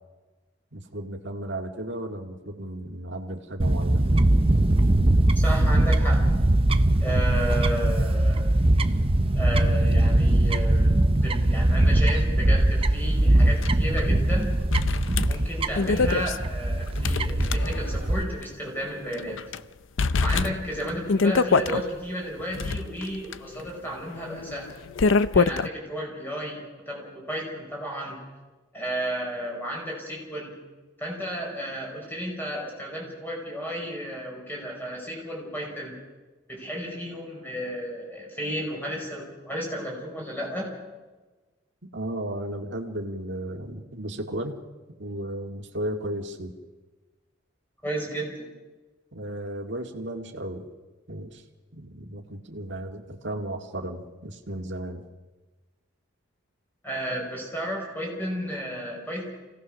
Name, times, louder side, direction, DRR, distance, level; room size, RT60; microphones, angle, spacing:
voice 1, 0.7-4.1 41.9-44.6 45.0-46.5 49.1-50.7 51.1-51.4 51.7-55.0, right 1 dB, 60° right, 3 dB, 2.0 m, -34 dB
Fowl / Bird, 3.6-18.2, right 1 dB, 25° right, 0.7 m, -21 dB
voice 2, 5.4-6.3 7.0-8.5 9.3-14.5 15.3-19.4 20.2-24.7 25.3-28.2 28.7-30.5 31.0-36.0 36.5-40.8 47.8-48.5 56.8-59.3, equal, 10° left, -1 dB, 5.5 m, -33 dB
sound 1, 13.6-13.7 14.0-14.1 14.7-18.1 18.4-18.5 19.1-19.6 20.0-21.8 22.4-25.7, left 4 dB, 70° left, 0.6 m, -25 dB
26.0 x 17.5 x 6.4 m, 1.2 s
head